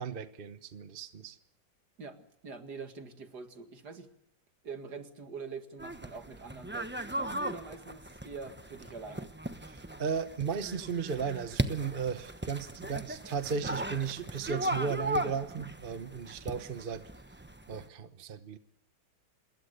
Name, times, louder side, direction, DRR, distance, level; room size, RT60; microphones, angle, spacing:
voice 1, 0.0-1.4 9.6-17.0 17.7-18.6, right 6 dB, 35° right, 10 dB, 1.0 m, -35 dB
voice 2, 2.0-4.1 4.6-9.3, right 4 dB, 55° right, 7 dB, 2.6 m, -44 dB
sound 1, 5.8-17.9, right 1 dB, 10° right, 0.6 m, -38 dB
27.0 x 21.0 x 6.7 m, 0.79 s
omnidirectional pair, 2.1 m